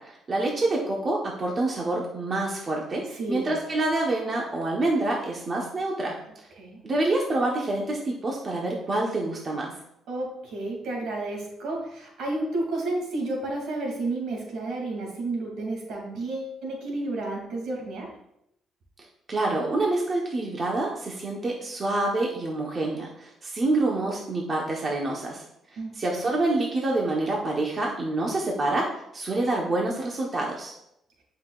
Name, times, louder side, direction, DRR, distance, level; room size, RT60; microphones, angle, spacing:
voice 1, 0.0-6.1 6.8-9.7 19.3-25.4 25.9-30.7, right 2 dB, 40° right, -2 dB, 1.2 m, -27 dB
voice 2, 3.1-3.6 6.6-6.8 10.1-18.1 25.8-25.9, right 2 dB, 80° right, -1 dB, 2.8 m, -31 dB
10.0 x 5.8 x 2.5 m, 0.80 s
cardioid pair, 100°, 0 cm